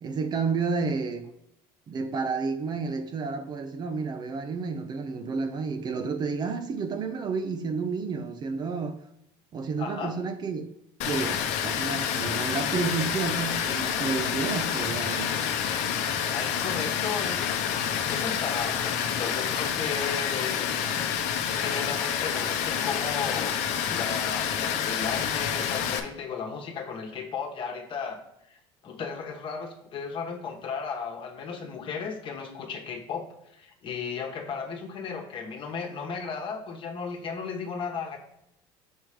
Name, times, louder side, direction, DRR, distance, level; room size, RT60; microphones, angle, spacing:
voice 1, 0.0-1.3 1.9-9.0 9.5-10.7 11.1-15.4, right 4 dB, 35° right, 0.6 m, -30 dB
voice 2, 9.8-10.2 16.3-17.5 18.0-20.7 21.5-28.2 28.5-28.6 28.8-38.2, left 5 dB, 45° left, 1.2 m, -35 dB
Water, 11.0-26.0, left 8 dB, 70° left, 0.8 m, -28 dB
6.3 x 3.1 x 4.9 m
supercardioid pair, 110°, 12 cm